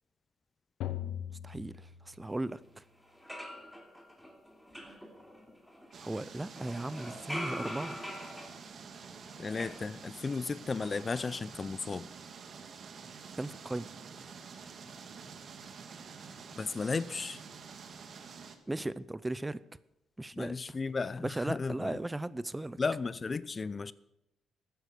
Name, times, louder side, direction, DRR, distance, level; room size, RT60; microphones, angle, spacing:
sound 1, 0.8-2.7, left 11 dB, 80° left, 1.2 m, -40 dB
voice 1, 1.4-2.8 4.9-5.0 6.0-8.0 13.4-14.0 18.7-19.6 20.2-20.5 21.2-22.8, right 2 dB, 15° right, 0.5 m, -37 dB
sound 2, 2.6-2.7 3.0-6.1 6.5-10.4 10.7-11.4, equal, 5° left, 2.8 m, -44 dB
sound 3, 5.9-18.6, right 6 dB, 55° right, 1.6 m, -49 dB
voice 2, 9.4-12.1 16.6-17.4 20.3-22.0 22.8-23.9, left 4 dB, 35° left, 0.5 m, -34 dB
14.0 x 9.2 x 6.6 m
cardioid pair, 90°, 0 cm